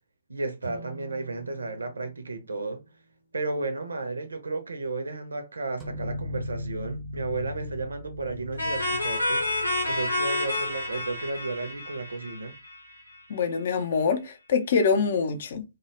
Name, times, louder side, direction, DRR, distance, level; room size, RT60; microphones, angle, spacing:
voice 1, 0.3-2.8 3.3-12.5, right 3 dB, 70° right, 0.6 m, -33 dB
sound 1, 0.6-3.9, right 3 dB, 90° right, 0.9 m, -48 dB
sound 2, 5.8-11.3, left 1 dB, 5° right, 0.5 m, -38 dB
sound 3, 8.6-13.2, left 1 dB, 85° left, 0.7 m, -29 dB
voice 2, 13.3-15.6, left 5 dB, 50° left, 0.4 m, -25 dB
2.2 x 2.0 x 3.0 m
figure-of-eight pair, 125°, 0 cm